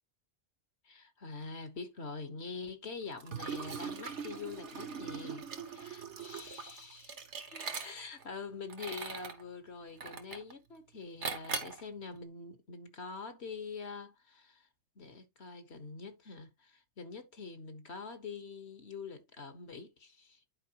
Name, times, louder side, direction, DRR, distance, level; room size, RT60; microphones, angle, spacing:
voice 1, 0.8-7.2 7.5-14.7 14.9-20.4, left 4 dB, 70° left, 1.6 m, -45 dB
Liquid, 3.2-8.2 8.7-9.4 10.0-10.5 11.2-11.8, right 5 dB, 80° right, 1.5 m, -41 dB
10.5 x 4.7 x 2.9 m
omnidirectional pair, 1.2 m